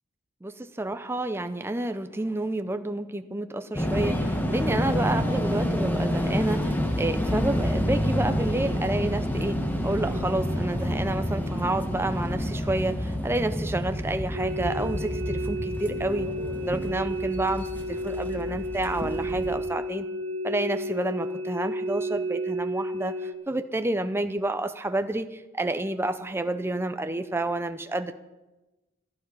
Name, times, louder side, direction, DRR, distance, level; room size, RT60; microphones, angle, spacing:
voice 1, 0.4-9.6 9.8-16.3 16.6-20.1 20.4-28.1, right 2 dB, 10° right, 9 dB, 0.6 m, -29 dB
sound 1, 3.7-19.5, equal, 10° left, 1.3 m, -28 dB
sound 2, 14.3-23.3, equal, 65° right, 1.2 m, -32 dB
16.0 x 12.0 x 5.3 m, 1.1 s
head